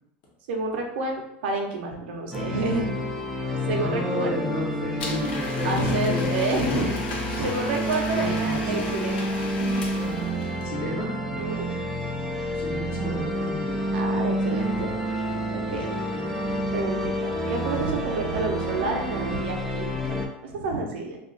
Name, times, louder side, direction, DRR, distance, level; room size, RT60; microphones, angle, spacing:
voice 1, 0.5-2.9 3.3-4.4 5.6-6.9 7.4-9.8 11.3-11.7 13.9-14.9 15.5-15.9 16.7-20.2 20.4-21.2, right 3 dB, 75° right, 1 dB, 0.7 m, -29 dB
sound 1, 2.3-20.3, equal, ahead, 0.3 m, -28 dB
voice 2, 3.7-6.3 6.7-6.9 7.3-7.4 8.1-8.9 10.6-11.5 12.6-13.9 15.6-16.7, left 2 dB, 45° left, -4 dB, 0.9 m, -33 dB
Domestic sounds home sounds, 5.0-10.6, left 3 dB, 80° left, 0.6 m, -36 dB
2.4 x 2.3 x 3.7 m, 0.80 s
supercardioid pair, 165°, 6 cm